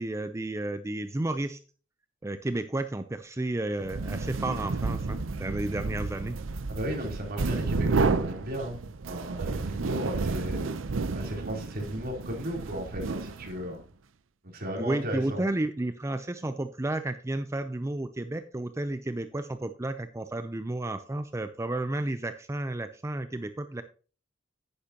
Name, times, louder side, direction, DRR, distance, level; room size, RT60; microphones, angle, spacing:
voice 1, 0.0-1.6 2.2-6.4 14.7-23.8, right 2 dB, 15° right, 0.4 m, -32 dB
sound 1, 3.8-13.7, right 4 dB, 80° right, 0.6 m, -31 dB
voice 2, 6.7-10.7 11.1-13.8 14.5-15.4, equal, 50° right, 3.4 m, -35 dB
10.5 x 9.6 x 2.8 m
head